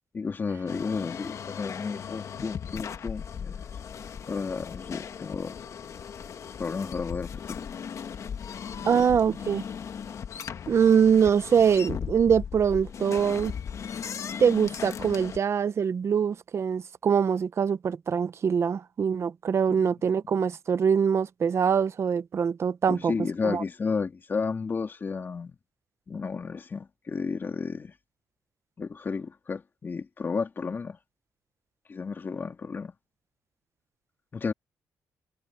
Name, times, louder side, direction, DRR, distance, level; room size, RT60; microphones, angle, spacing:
voice 1, 0.1-3.7 4.3-5.6 6.6-7.6 8.8-9.1 19.7-19.9 22.9-25.6 26.1-27.9 28.8-31.0 31.9-32.9 34.3-34.5, left 5 dB, 35° left, 3.2 m, -32 dB
sound 1, 0.7-15.4, left 7 dB, 55° left, 1.3 m, -37 dB
voice 2, 8.8-9.6 10.7-13.5 14.4-23.1 23.4-23.6, right 7 dB, 45° right, 0.8 m, -23 dB
cardioid pair, 130°, 6 cm